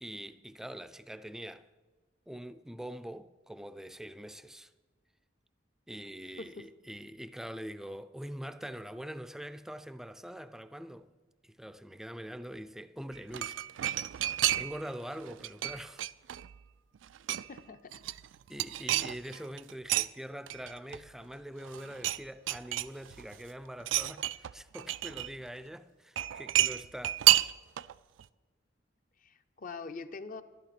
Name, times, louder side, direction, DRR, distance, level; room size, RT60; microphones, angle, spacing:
voice 1, 0.0-1.7 2.3-4.7 5.9-11.1 11.4-13.6 14.6-16.0 18.5-27.2, equal, ahead, 0.4 m, -44 dB
sound 1, 13.1-14.9 15.2-16.6 16.9-17.6 17.9-20.1 20.5-21.3 21.6-22.2 22.5-23.3 23.8-25.3 26.2-27.9 28.2-28.3, right 14 dB, 85° right, 0.3 m, -30 dB
voice 2, 17.5-18.0 29.2-30.4, left 4 dB, 45° left, 0.6 m, -43 dB
11.5 x 11.5 x 5.9 m
head